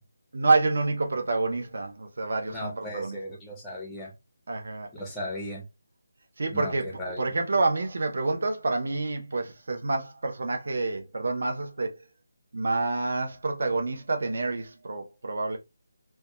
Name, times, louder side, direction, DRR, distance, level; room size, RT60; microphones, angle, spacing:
voice 1, 0.3-3.2 4.5-4.9 6.4-6.9 7.2-11.9 12.5-15.6, right 3 dB, 45° right, 0.5 m, -28 dB
voice 2, 2.5-4.1 4.9-5.6 6.5-7.3, equal, 5° left, 0.5 m, -36 dB
2.2 x 2.1 x 2.9 m
hypercardioid pair, 180°, 0 cm